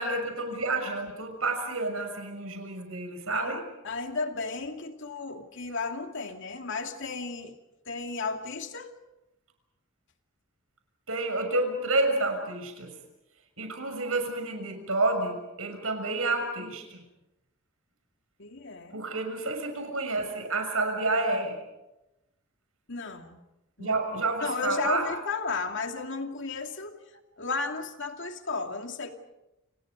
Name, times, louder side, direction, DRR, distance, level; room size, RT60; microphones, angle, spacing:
voice 1, 0.0-3.6 11.1-12.9 13.6-17.0 18.9-21.5 23.8-25.1, right 2 dB, 80° right, 4 dB, 6.6 m, -29 dB
voice 2, 3.8-7.5 7.9-8.9 18.4-19.0 22.9-23.4 23.8-23.9 24.4-27.0 27.4-29.1, left 4 dB, 60° left, 5 dB, 2.5 m, -34 dB
29.5 x 29.0 x 5.3 m, 0.94 s
head